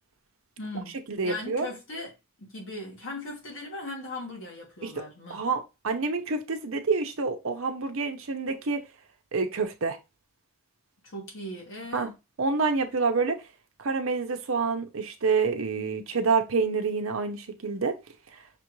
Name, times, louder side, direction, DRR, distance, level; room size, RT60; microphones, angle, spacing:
voice 1, 0.6-1.0 1.2-2.1 2.4-5.4 11.0-12.1, left 2 dB, 65° left, 1.4 m, -38 dB
voice 2, 1.1-1.7 4.8-4.9 5.3-8.8 9.3-10.0 11.9-12.1 12.4-13.4 13.8-18.0, right 4 dB, 75° right, 0.7 m, -27 dB
6.0 x 2.5 x 3.1 m
head